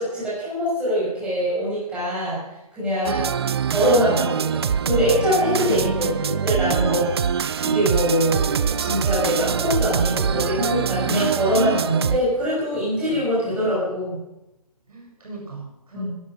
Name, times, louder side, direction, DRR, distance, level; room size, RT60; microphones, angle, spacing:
voice 1, 0.0-2.4 2.7-3.2 3.7-7.3 7.6-14.2 15.9-16.1, equal, 5° right, -9 dB, 5.8 m, -23 dB
sound 1, 3.1-12.2, right 7 dB, 40° right, 0.4 m, -24 dB
voice 2, 5.7-6.5 12.9-13.2 14.9-16.1, right 3 dB, 70° right, -1 dB, 6.6 m, -39 dB
12.5 x 11.5 x 6.3 m, 0.92 s
hypercardioid pair, 160°, 20 cm